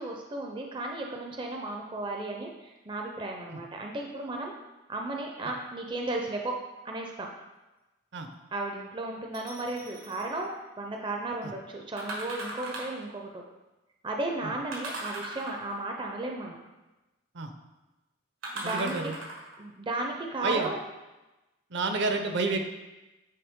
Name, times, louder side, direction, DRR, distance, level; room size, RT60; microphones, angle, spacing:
voice 1, 0.0-4.5 4.9-6.6 6.8-7.3 8.5-13.4 14.0-16.6 18.5-19.1 19.6-20.8, right 2 dB, 25° right, 1 dB, 0.5 m, -34 dB
sound 1, 9.3-10.3 12.0-13.1 14.7-15.9 18.4-19.6 20.2-20.3, right 2 dB, 90° right, 1.5 m, -38 dB
voice 2, 18.6-19.1 20.4-20.7 21.7-22.6, right 3 dB, 60° right, 5 dB, 0.7 m, -30 dB
8.6 x 3.9 x 3.6 m, 1.1 s
head